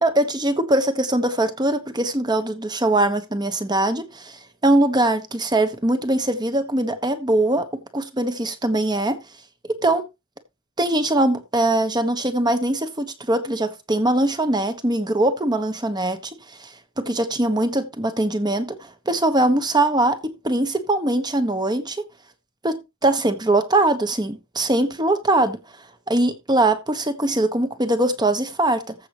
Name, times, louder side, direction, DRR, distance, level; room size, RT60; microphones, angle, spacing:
voice 1, 0.0-9.2 9.7-10.0 10.8-16.2 16.6-16.7 17.0-22.1 22.6-25.6 26.1-28.9, right 1 dB, 20° right, 1.3 m, -22 dB
15.0 x 6.2 x 3.1 m
head